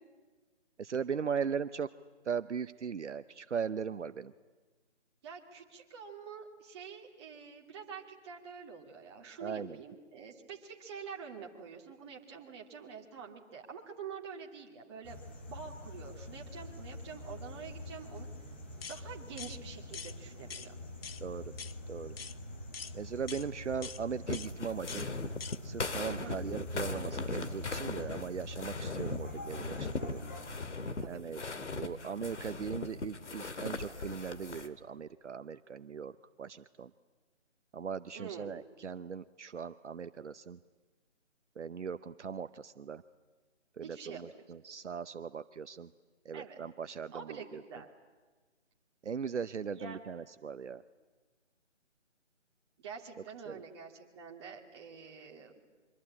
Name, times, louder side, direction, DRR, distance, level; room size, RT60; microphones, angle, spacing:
voice 1, 0.8-1.9 2.2-4.3 9.4-9.8 21.2-21.5 21.9-22.2 22.9-25.1 25.6-30.2 31.1-31.4 31.7-36.9 37.7-40.6 41.6-43.0 43.8-45.9 46.2-47.6 49.0-50.8 53.5-53.6, right 6 dB, 70° right, 12 dB, 0.8 m, -39 dB
voice 2, 5.2-15.2 15.5-18.3 18.8-20.7 26.2-26.4 31.0-31.2 38.1-38.5 43.8-44.2 46.3-46.6 47.1-47.9 49.7-50.0 52.8-55.5, right 6 dB, 20° right, 0 dB, 2.5 m, -47 dB
sound 1, 15.0-30.5, left 1 dB, 10° left, 0.7 m, -45 dB
sound 2, 18.8-19.0 19.4-19.6 19.9-20.1 20.5-20.7 21.0-21.2 21.6-21.8 22.2-22.4 22.7-22.9 23.3-23.5 23.8-24.0 24.3-24.5 24.9-25.1 25.4-25.6, left 6 dB, 55° left, 0.9 m, -44 dB
sound 3, 24.3-34.7, left 3 dB, 70° left, 2.2 m, -39 dB
25.0 x 24.0 x 8.7 m, 1.3 s
figure-of-eight pair, 160°, 36 cm